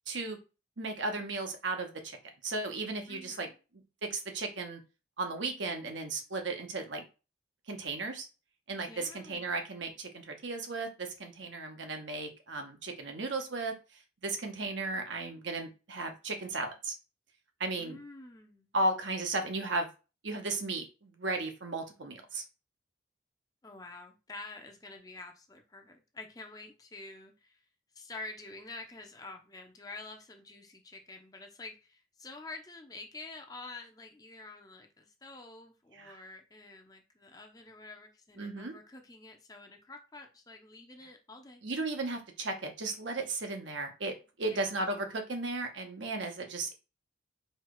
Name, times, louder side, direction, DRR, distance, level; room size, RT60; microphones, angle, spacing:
voice 1, 0.1-0.4 0.8-2.2 2.4-3.5 4.0-4.8 5.2-7.0 7.7-8.3 8.7-13.7 14.2-16.9 17.6-18.0 18.7-19.9 20.2-22.4 35.9-36.2 38.4-38.7 41.6-46.7, right 2 dB, 70° right, 4 dB, 1.0 m, -35 dB
voice 2, 3.1-3.5 8.9-9.5 17.8-18.7 23.6-27.6 27.9-41.6 44.5-44.8, left 3 dB, 20° left, 4 dB, 0.6 m, -48 dB
4.5 x 2.3 x 4.7 m, 0.31 s
head